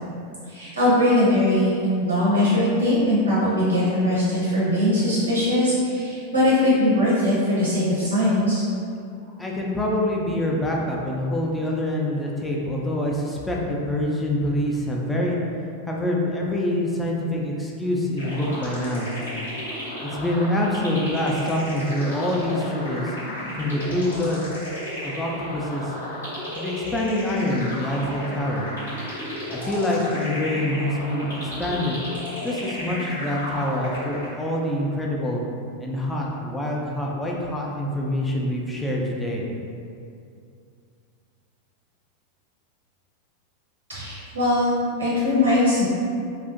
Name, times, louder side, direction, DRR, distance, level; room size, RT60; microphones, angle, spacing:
voice 1, 0.5-8.6 43.9-44.7 45.0-45.9, left 1 dB, 80° right, -9 dB, 0.7 m, -21 dB
voice 2, 9.4-15.4 15.9-19.1 20.0-23.1 23.6-24.5 25.0-25.9 26.6-28.7 29.5-32.0 32.4-35.4 35.8-39.5, left 1 dB, 10° left, -2 dB, 0.3 m, -25 dB
sound 1, 18.2-34.6, left 1 dB, 70° left, 0.7 m, -33 dB
2.5 x 2.0 x 2.4 m, 2.4 s
figure-of-eight pair, 90°, 0 cm